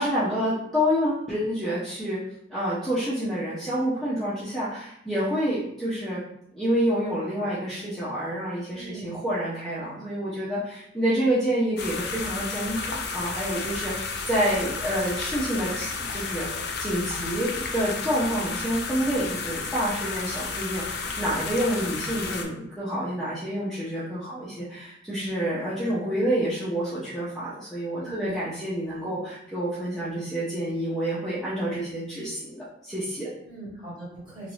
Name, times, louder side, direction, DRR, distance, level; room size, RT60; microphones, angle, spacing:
voice 1, 0.0-2.2 2.5-6.2 6.5-16.5 16.8-33.3, equal, ahead, -11 dB, 0.6 m, -28 dB
voice 2, 8.7-9.2 28.0-28.3 33.4-34.5, right 2 dB, 25° right, -7 dB, 1.2 m, -40 dB
sound 1, 11.8-22.4, left 4 dB, 55° left, 0.4 m, -32 dB
3.0 x 2.5 x 3.0 m, 0.76 s
head